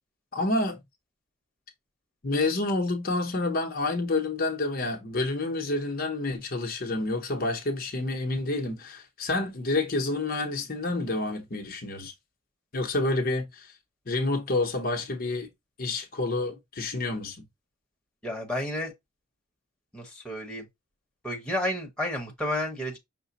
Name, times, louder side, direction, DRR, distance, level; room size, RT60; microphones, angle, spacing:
voice 1, 0.3-0.8 2.2-12.1 12.7-13.7 14.1-15.5 15.8-17.4, left 2 dB, 45° left, 0.8 m, -28 dB
voice 2, 18.2-18.9 19.9-20.7 21.2-23.0, left 1 dB, 5° left, 1.1 m, -31 dB
5.8 x 2.2 x 4.0 m
head